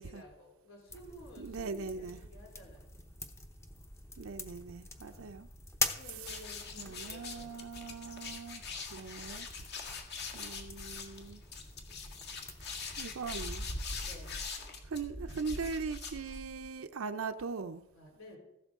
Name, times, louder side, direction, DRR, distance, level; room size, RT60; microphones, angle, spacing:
voice 1, 0.0-3.0 5.1-5.3 6.0-7.6 11.2-11.4 14.0-14.4 17.9-18.4, left 1 dB, 75° left, 0 dB, 3.5 m, -53 dB
sound 1, 0.9-14.4, left 2 dB, 15° left, 0.8 m, -44 dB
voice 2, 1.4-2.2 4.2-5.5 6.2-6.3 6.8-8.6 8.9-9.5 10.3-11.4 13.0-13.7 14.8-17.8, right 4 dB, 85° right, 8 dB, 0.5 m, -40 dB
sound 2, 6.2-16.7, left 3 dB, 50° left, 1.9 m, -42 dB
15.0 x 12.0 x 3.6 m, 0.87 s
head